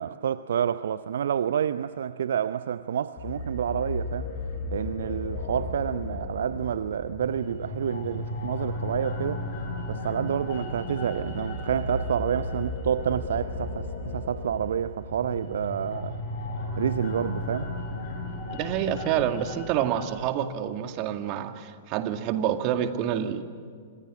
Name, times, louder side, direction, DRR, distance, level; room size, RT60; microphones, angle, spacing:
voice 1, 0.0-4.3 4.7-9.4 9.9-16.2 16.8-17.7, right 9 dB, 60° right, 0.7 m, -29 dB
sound 1, 3.2-20.2, left 2 dB, 40° left, 7.1 m, -34 dB
voice 2, 18.5-23.4, right 10 dB, 35° right, 2.0 m, -28 dB
29.5 x 26.0 x 7.6 m
figure-of-eight pair, 105°, 0 cm